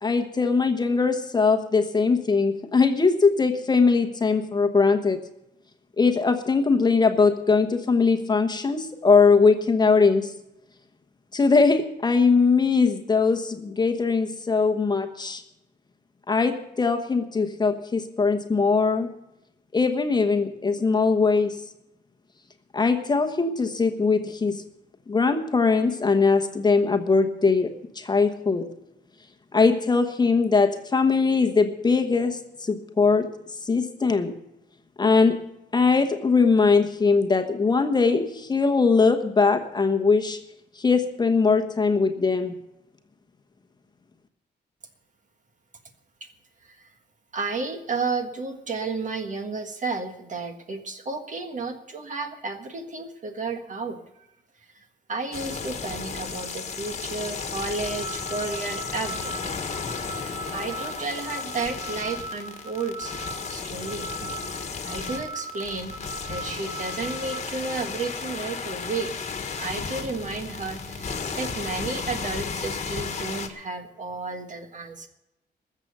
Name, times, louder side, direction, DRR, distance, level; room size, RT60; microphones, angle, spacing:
voice 1, 0.0-5.2 6.0-10.3 11.3-15.4 16.3-19.1 19.7-21.6 22.7-24.6 25.1-28.7 29.5-33.3 33.6-34.3 35.0-35.4 35.7-40.4 40.7-42.6, left 4 dB, 25° left, 6 dB, 1.1 m, -21 dB
voice 2, 47.3-54.3 54.7-59.6 60.1-63.2 63.5-64.4 64.8-69.1 69.6-75.1, right 3 dB, 45° right, 7 dB, 1.6 m, -32 dB
sound 1, 55.3-73.5, left 5 dB, 40° left, 1.5 m, -34 dB
sound 2, 57.7-67.4, right 2 dB, 30° right, 4.3 m, -39 dB
20.0 x 7.6 x 6.7 m, 0.89 s
wide cardioid pair, 170°, 17 cm